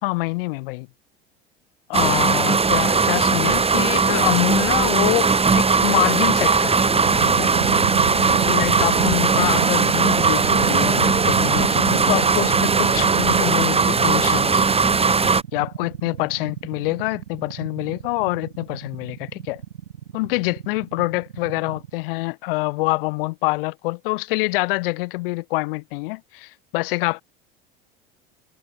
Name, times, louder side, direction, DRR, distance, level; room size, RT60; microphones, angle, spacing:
voice 1, 0.0-0.9 1.9-7.5 8.5-14.6 15.5-19.6 20.1-27.2, left 24 dB, 65° left, 4.2 m, -26 dB
sound 1, 1.9-15.4, right 4 dB, 20° right, 3.7 m, -19 dB
sound 2, 7.1-21.9, right 10 dB, 80° right, 4.1 m, -30 dB
hypercardioid pair, 75°, 30 cm